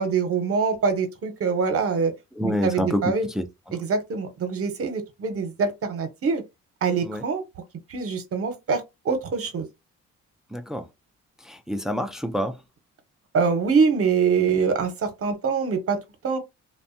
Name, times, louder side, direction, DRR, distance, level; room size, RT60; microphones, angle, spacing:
voice 1, 0.0-2.1 2.4-3.3 3.7-6.4 6.8-7.4 7.9-9.7 13.3-16.4, right 5 dB, 50° right, 0.8 m, -24 dB
voice 2, 2.4-3.5 7.0-7.2 10.5-10.9 11.4-12.6, equal, ahead, 0.4 m, -27 dB
2.6 x 2.2 x 2.5 m
cardioid pair, 90°, 30 cm